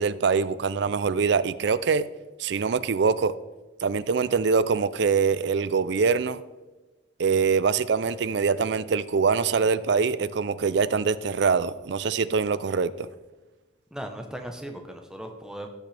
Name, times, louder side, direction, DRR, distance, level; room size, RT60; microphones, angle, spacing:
voice 1, 0.0-2.0 2.4-3.3 3.8-6.4 7.2-13.1, right 5 dB, 60° right, 16 dB, 0.4 m, -24 dB
voice 2, 13.9-15.7, right 1 dB, 5° right, 4 dB, 0.8 m, -37 dB
15.5 x 6.4 x 3.3 m, 1.2 s
head